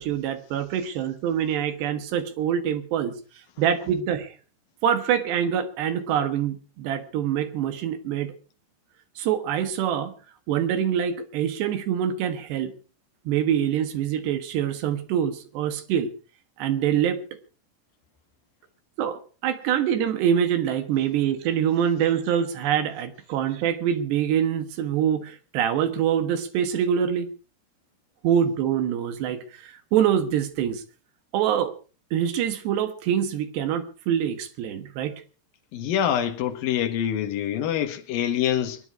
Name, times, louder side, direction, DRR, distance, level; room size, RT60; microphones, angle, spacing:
voice 1, 0.0-3.1 3.6-4.3 4.8-8.3 9.2-10.1 10.5-12.7 13.3-16.1 16.6-17.2 19.0-27.3 28.2-30.8 31.3-31.7 32.1-35.2, right 9 dB, 70° right, 3.4 m, -25 dB
voice 2, 35.7-38.8, left 10 dB, 60° left, 2.8 m, -25 dB
24.0 x 10.5 x 4.8 m
omnidirectional pair, 5.4 m